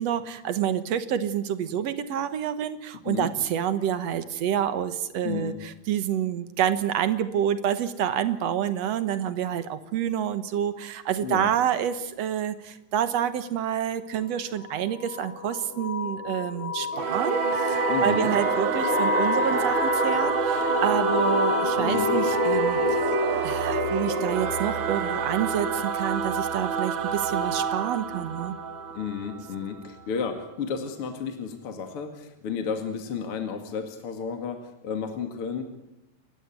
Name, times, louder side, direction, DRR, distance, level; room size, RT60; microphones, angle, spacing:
voice 1, 0.0-22.8 23.4-28.6, right 9 dB, 60° right, 12 dB, 2.0 m, -28 dB
voice 2, 5.2-5.6 11.2-11.5 17.9-18.3 21.8-22.2 28.9-35.6, left 6 dB, 45° left, 6 dB, 2.6 m, -32 dB
sound 1, 14.6-29.0, left 6 dB, 70° left, 1.3 m, -30 dB
Singing / Musical instrument, 16.9-29.8, right 7 dB, 80° right, 1.1 m, -27 dB
29.5 x 14.5 x 9.3 m, 0.93 s
omnidirectional pair, 4.0 m